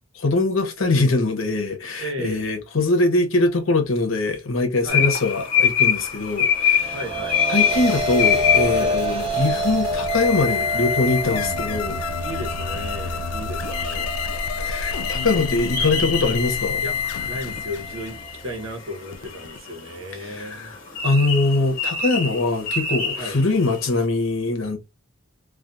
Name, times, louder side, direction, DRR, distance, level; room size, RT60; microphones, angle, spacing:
voice 1, 0.2-7.0 7.5-12.0 14.6-16.8 20.2-20.8 21.0-24.8, left 2 dB, 70° left, 0.8 m, -22 dB
voice 2, 2.0-2.4 4.8-5.0 6.9-7.4 8.8-9.0 11.3-11.4 12.1-14.2 16.8-16.9 17.2-20.7 23.2-23.4, equal, 75° right, 0.9 m, -34 dB
sound 1, 4.9-23.9, left 7 dB, 40° left, 1.0 m, -26 dB
sound 2, 6.4-18.7, right 1 dB, 25° right, 0.7 m, -29 dB
sound 3, 7.7-19.6, left 6 dB, 90° left, 0.3 m, -29 dB
2.4 x 2.3 x 2.6 m
head